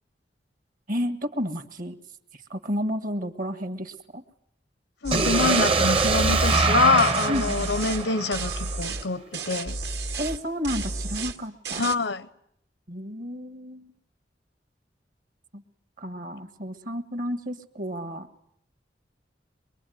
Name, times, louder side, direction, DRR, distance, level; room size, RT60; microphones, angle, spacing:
voice 1, 0.9-2.0 2.3-4.2 7.3-7.7 10.2-11.9 12.9-13.9 15.5-15.6 16.0-18.3, equal, 55° right, 1.7 m, -31 dB
voice 2, 5.0-9.8 11.8-12.3, left 4 dB, 90° left, 1.0 m, -25 dB
sound 1, 5.0-5.7 6.0-6.7 7.0-8.1 8.3-9.1 9.3-10.4 10.6-11.4 11.6-12.0, right 3 dB, 70° right, 2.1 m, -32 dB
sound 2, 5.1-9.0, right 4 dB, 35° right, 1.0 m, -24 dB
24.0 x 22.5 x 9.3 m
head